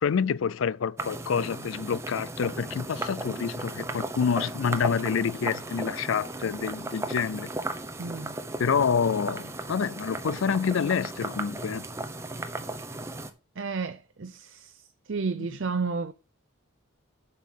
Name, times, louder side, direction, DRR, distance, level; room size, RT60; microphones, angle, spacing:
voice 1, 0.0-7.5 8.6-11.8, left 6 dB, 70° left, 0.4 m, -27 dB
sound 1, 1.0-13.3, right 2 dB, 15° right, 0.8 m, -36 dB
voice 2, 8.0-8.4 13.6-14.8 15.1-16.1, right 4 dB, 60° right, 0.6 m, -32 dB
7.7 x 5.6 x 6.3 m
head